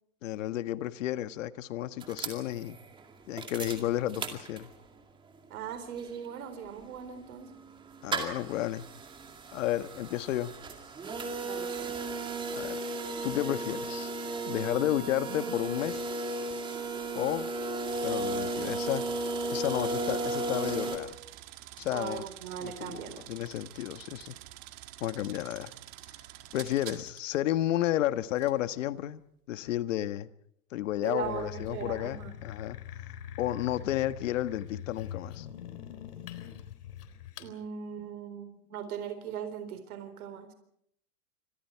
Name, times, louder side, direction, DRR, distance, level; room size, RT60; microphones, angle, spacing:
voice 1, 0.2-2.8 3.3-4.7 8.0-8.8 9.5-10.5 12.5-12.8 13.2-14.1 14.4-16.0 17.1-17.5 18.0-19.0 19.5-21.1 21.8-22.2 22.6-23.0 23.3-24.3 25.0-25.7 26.5-29.2 29.5-30.3 30.7-32.8 33.4-35.5, left 13 dB, 55° left, 12 dB, 1.6 m, -32 dB
sound 1, 2.0-5.0 5.4-5.5 5.6-21.0, right 2 dB, 10° right, 2.3 m, -35 dB
voice 2, 5.5-7.5 11.4-11.9 21.9-23.3 31.0-32.4 37.4-40.5, right 8 dB, 70° right, 9 dB, 4.1 m, -39 dB
sound 2, 17.9-27.4 28.4-28.6, right 15 dB, 30° right, 1.7 m, -48 dB
sound 3, 31.2-37.5, left 10 dB, 80° left, 3.9 m, -43 dB
28.5 x 26.0 x 4.6 m, 0.73 s
supercardioid pair, 175°, 46 cm